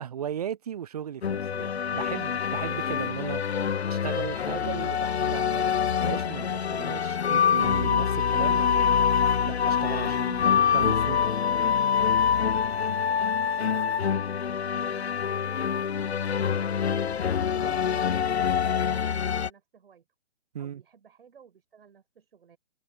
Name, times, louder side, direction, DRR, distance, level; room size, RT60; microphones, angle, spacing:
voice 1, 0.0-3.4 3.9-9.1 9.4-10.4 10.7-11.2 20.5-20.8, right 9 dB, 35° right, 0.7 m, -36 dB
sound 1, 1.2-19.5, left 7 dB, 65° left, 0.8 m, -25 dB
voice 2, 13.5-15.9 16.2-20.1 20.6-22.6, right 7 dB, 55° right, 4.7 m, -56 dB
figure-of-eight pair, 140°, 36 cm